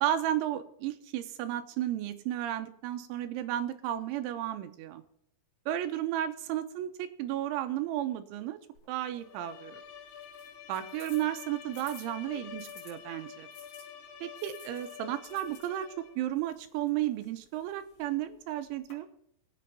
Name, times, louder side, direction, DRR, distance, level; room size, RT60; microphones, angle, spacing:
voice 1, 0.0-5.0 5.7-8.6 8.9-9.8 10.7-13.5 14.2-19.1, right 12 dB, 80° right, 9 dB, 3.0 m, -33 dB
sound 1, 8.8-12.9 13.5-18.9, left 3 dB, 40° left, 4.5 m, -57 dB
Bowed string instrument, 9.2-16.3, left 8 dB, 90° left, 3.7 m, -47 dB
23.0 x 8.5 x 2.8 m, 0.74 s
omnidirectional pair, 5.6 m